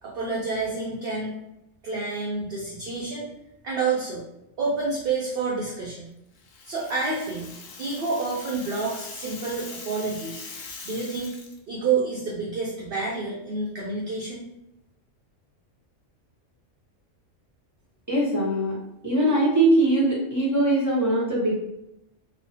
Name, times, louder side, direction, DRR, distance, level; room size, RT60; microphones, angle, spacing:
voice 1, 0.0-1.4 1.8-3.3 3.6-4.3 4.6-6.0 6.6-7.5 7.8-10.4 10.8-11.4 11.7-14.5, right 4 dB, 60° right, -4 dB, 0.7 m, -28 dB
Rattle (instrument), 6.3-11.6, left 4 dB, 65° left, 0.5 m, -42 dB
voice 2, 18.1-18.8 19.0-21.5, right 1 dB, 15° right, -6 dB, 0.7 m, -21 dB
3.0 x 2.1 x 2.7 m, 0.86 s
omnidirectional pair, 1.3 m